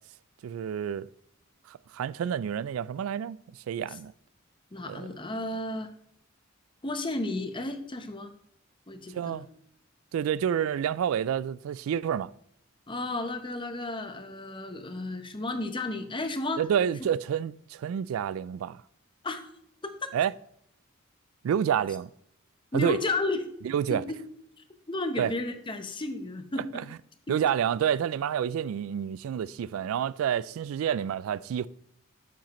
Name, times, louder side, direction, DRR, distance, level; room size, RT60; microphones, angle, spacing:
voice 1, 0.4-1.1 1.7-3.4 3.7-4.1 4.9-5.1 9.1-9.5 10.1-12.3 16.6-18.8 20.1-20.3 21.4-22.1 22.7-23.0 23.6-24.0 25.2-25.3 26.7-26.8 27.3-31.7, right 8 dB, 80° right, 0.3 m, -28 dB
voice 2, 4.7-5.9 6.8-8.3 8.9-9.4 12.9-16.6 19.2-19.4 19.8-20.1 22.7-23.4 23.9-24.2 24.9-26.8 27.3-27.4, left 2 dB, 25° left, 0.8 m, -33 dB
9.2 x 7.3 x 3.0 m
head